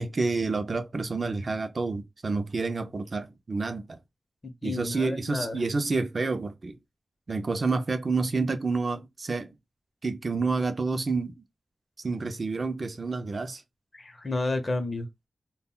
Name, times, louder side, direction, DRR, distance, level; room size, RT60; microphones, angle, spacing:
voice 1, 0.0-4.0 4.6-6.8 7.3-9.5 10.0-11.4 12.0-13.6, right 3 dB, 45° right, 0.4 m, -29 dB
voice 2, 4.4-5.6 13.9-15.1, left 2 dB, 35° left, 0.6 m, -31 dB
2.2 x 2.1 x 3.6 m
wide cardioid pair, 125°, 0 cm